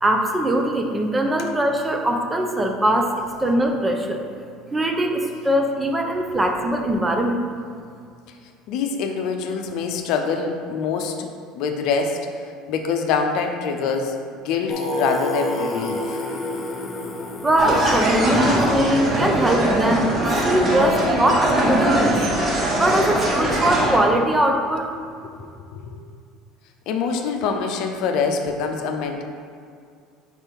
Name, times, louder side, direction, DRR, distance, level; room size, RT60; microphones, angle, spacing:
voice 1, 0.0-4.3 4.7-7.4 17.4-22.2 22.8-24.9, right 1 dB, 15° right, 3 dB, 0.7 m, -21 dB
voice 2, 8.7-11.3 11.5-12.3 12.7-16.2 21.3-21.4 25.2-25.3 25.6-26.0 26.9-29.2, left 5 dB, 65° left, 4 dB, 0.6 m, -25 dB
Singing, 14.7-19.4, left 1 dB, 35° left, 0.9 m, -29 dB
sound 1, 17.6-24.0, right 1 dB, 35° right, 1.3 m, -21 dB
4.5 x 4.3 x 5.2 m, 2.3 s
hypercardioid pair, 85°, 0 cm